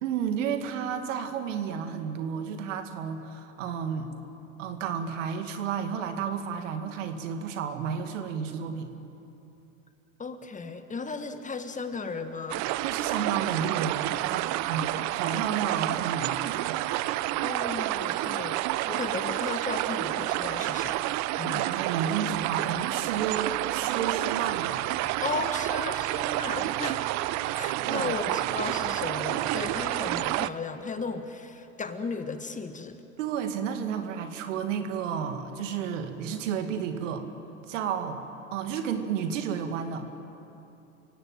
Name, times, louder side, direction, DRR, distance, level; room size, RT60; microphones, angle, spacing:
voice 1, 0.0-4.1 4.6-8.9 12.8-17.0 18.3-18.5 21.4-24.9 27.7-28.1 33.2-37.2 37.7-38.2 38.5-40.1, right 7 dB, 65° right, 7 dB, 2.3 m, -32 dB
voice 2, 10.2-12.7 17.4-18.6 18.9-21.0 21.4-21.7 25.2-27.3 27.6-33.0, left 4 dB, 20° left, 8 dB, 1.7 m, -35 dB
sound 1, 12.5-30.5, right 16 dB, 45° right, 0.8 m, -29 dB
30.0 x 17.0 x 9.0 m, 2.9 s
hypercardioid pair, 80°, 41 cm